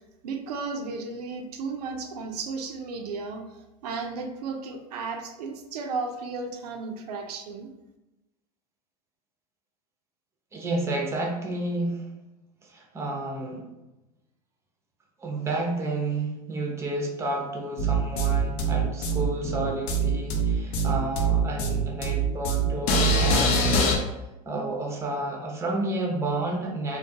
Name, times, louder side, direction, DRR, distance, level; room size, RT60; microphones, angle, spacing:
voice 1, 0.2-3.4 3.8-7.7, right 4 dB, 85° right, 4 dB, 0.4 m, -34 dB
voice 2, 10.5-12.1 12.6-13.6 15.2-24.0 24.4-27.0, right 2 dB, 15° right, 0 dB, 0.5 m, -31 dB
sound 1, 17.8-24.0, right 2 dB, 50° left, 0.5 m, -23 dB
2.2 x 2.2 x 2.7 m, 0.98 s
hypercardioid pair, 110°, 20 cm